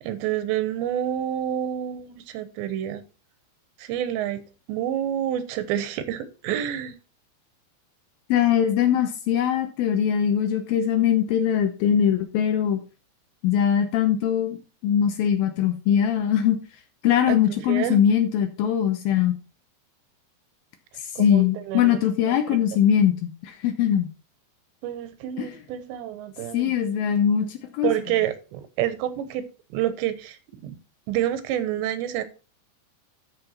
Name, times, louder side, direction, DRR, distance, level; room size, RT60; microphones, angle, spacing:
voice 1, 0.0-3.0 3.8-4.4 4.7-7.0 17.3-18.0 21.2-22.0 22.3-22.6 24.8-26.9 27.8-30.8 31.1-32.2, right 11 dB, 85° right, 3.3 m, -28 dB
voice 2, 8.3-12.8 13.4-14.6 14.8-16.6 17.0-19.4 21.0-24.1 25.4-25.5 26.5-27.9, left 9 dB, 75° left, 2.3 m, -21 dB
12.5 x 5.6 x 4.3 m
omnidirectional pair, 5.0 m